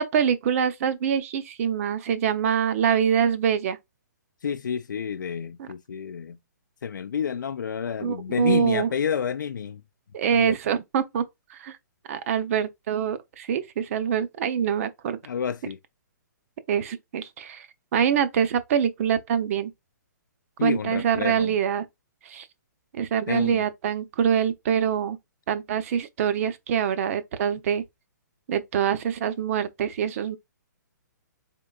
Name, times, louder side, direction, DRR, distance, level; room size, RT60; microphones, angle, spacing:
voice 1, 0.0-3.8 5.6-5.7 8.0-8.9 10.1-11.2 11.5-11.8 12.1-15.2 16.7-17.7 17.9-19.7 20.6-21.9 22.3-22.5 22.9-25.2 25.5-27.8 28.5-30.4, right 8 dB, 50° right, 0.6 m, -25 dB
voice 2, 4.4-6.4 6.8-9.8 10.3-10.5 15.2-15.8 20.6-21.6 23.3-23.6, left 7 dB, 85° left, 0.4 m, -29 dB
3.7 x 3.6 x 2.3 m
hypercardioid pair, 140°, 10 cm